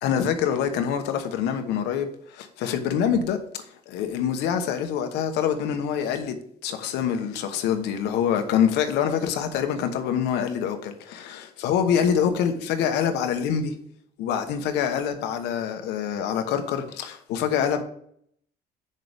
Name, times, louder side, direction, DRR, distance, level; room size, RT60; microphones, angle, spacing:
voice 1, 0.0-6.4 6.6-13.8 14.2-17.8, left 8 dB, 90° left, 1.0 m, -25 dB
7.5 x 6.7 x 3.5 m
cardioid pair, 110°, 17 cm